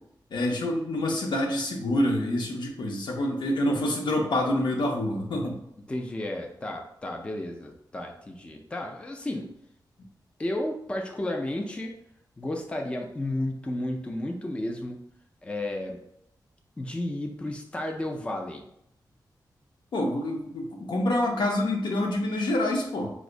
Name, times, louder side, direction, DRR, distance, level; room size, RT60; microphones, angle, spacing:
voice 1, 0.3-5.6 19.9-23.1, left 1 dB, 85° left, 1 dB, 0.7 m, -27 dB
voice 2, 5.9-9.5 10.4-11.9 12.4-15.0 15.4-16.0 16.8-18.6, left 1 dB, 15° left, 2 dB, 0.3 m, -32 dB
4.7 x 2.0 x 2.5 m, 0.75 s
wide cardioid pair, 170°, 8 cm